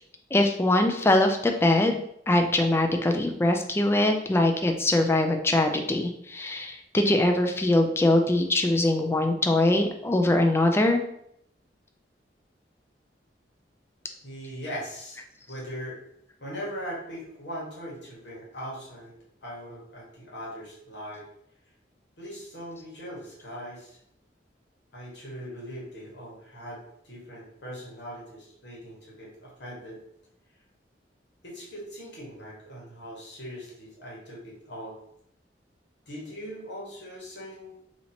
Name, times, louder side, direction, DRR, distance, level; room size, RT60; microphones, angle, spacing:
voice 1, 0.3-2.0 2.3-11.0, left 1 dB, 15° left, 4 dB, 0.3 m, -22 dB
voice 2, 14.2-15.2 15.5-16.0 16.4-19.1 19.4-21.3 22.2-24.0 24.9-30.0 31.4-35.0 36.1-37.8, equal, 70° left, -4 dB, 1.4 m, -40 dB
2.8 x 2.8 x 4.2 m, 0.73 s
head